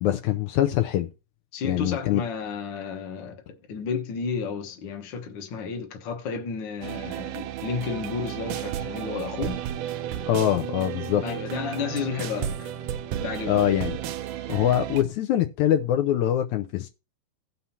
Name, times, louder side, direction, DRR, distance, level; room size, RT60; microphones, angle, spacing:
voice 1, 0.0-1.1 1.6-2.2 10.3-11.2 13.5-14.0 14.5-16.9, left 11 dB, 80° left, 2.0 m, -23 dB
voice 2, 1.5-9.6 11.2-12.7 13.2-13.7, left 5 dB, 55° left, 1.4 m, -32 dB
sound 1, 6.8-15.0, right 11 dB, 75° right, 1.6 m, -33 dB
16.5 x 5.7 x 2.8 m
omnidirectional pair, 3.6 m